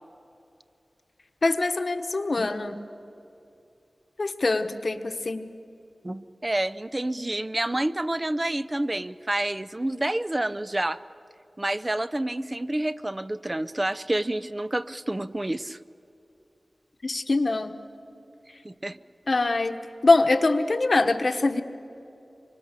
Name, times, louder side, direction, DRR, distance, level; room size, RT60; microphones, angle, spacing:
voice 1, 1.4-2.8 4.2-5.5 17.0-17.8 19.3-19.8 20.0-21.6, left 3 dB, 60° left, 8 dB, 1.2 m, -23 dB
voice 2, 6.0-11.0 11.6-15.8 18.6-19.0, right 1 dB, 30° right, 14 dB, 0.6 m, -28 dB
25.5 x 24.5 x 6.7 m, 2.7 s
cardioid pair, 45°, 0 cm